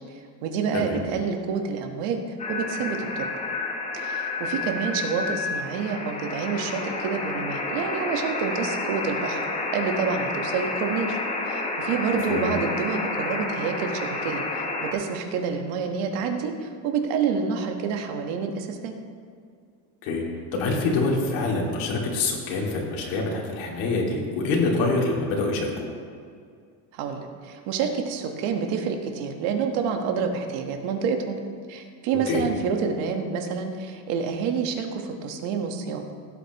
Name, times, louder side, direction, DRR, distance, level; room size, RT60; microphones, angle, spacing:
voice 1, 0.1-3.3 3.9-9.4 9.7-11.2 11.4-18.9 26.9-31.4 31.7-36.1, right 6 dB, 70° right, 4 dB, 1.5 m, -28 dB
sound 1, 2.4-14.9, left 3 dB, 15° left, 0.9 m, -30 dB
voice 2, 20.5-25.7 32.3-32.4, left 3 dB, 70° left, -2 dB, 2.6 m, -25 dB
16.5 x 8.4 x 3.0 m, 2.2 s
cardioid pair, 155°, 49 cm